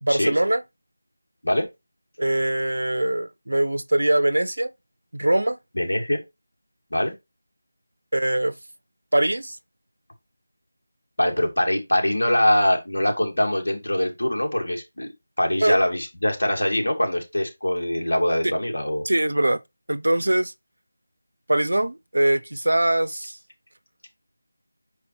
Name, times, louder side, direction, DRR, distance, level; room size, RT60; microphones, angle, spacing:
voice 1, 0.0-0.6 2.2-4.7 5.1-5.6 8.1-8.5 9.1-9.6 15.6-15.8 19.1-19.6 19.9-20.5 21.5-23.4, right 1 dB, 80° right, 0.5 m, -22 dB
voice 2, 5.7-6.2 6.9-7.1 11.2-15.1 15.4-19.0, left 1 dB, 80° left, 2.3 m, -23 dB
6.0 x 4.8 x 3.3 m
figure-of-eight pair, 170°, 0 cm